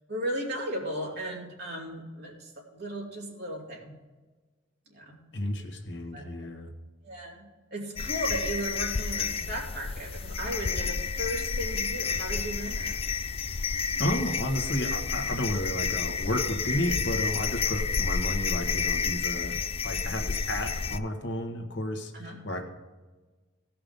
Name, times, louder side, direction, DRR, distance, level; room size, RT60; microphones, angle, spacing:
voice 1, 0.1-3.9 4.9-5.2 6.1-6.4 7.0-13.0 22.1-22.4, right 1 dB, 50° right, -3 dB, 3.0 m, -36 dB
voice 2, 5.3-6.7 14.0-22.1 22.4-22.6, left 1 dB, 60° left, 4 dB, 1.4 m, -32 dB
sound 1, 8.0-21.0, left 5 dB, 30° left, 0.3 m, -30 dB
16.5 x 5.9 x 5.2 m, 1.3 s
head